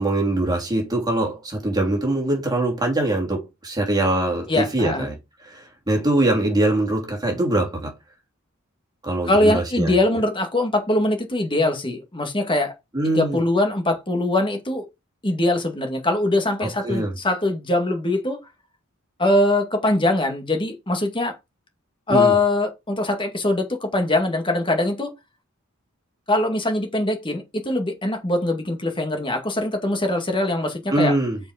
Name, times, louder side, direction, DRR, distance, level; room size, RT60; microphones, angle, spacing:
voice 1, 0.0-5.2 5.5-7.9 9.0-9.9 12.9-13.4 16.8-17.1 22.1-22.3 30.9-31.4, right 1 dB, 20° right, 3.0 m, -23 dB
voice 2, 4.5-5.1 9.3-12.7 13.0-14.9 15.2-18.4 19.2-21.3 22.1-25.1 26.3-31.1, left 2 dB, 25° left, 2.0 m, -22 dB
6.9 x 5.2 x 5.1 m
head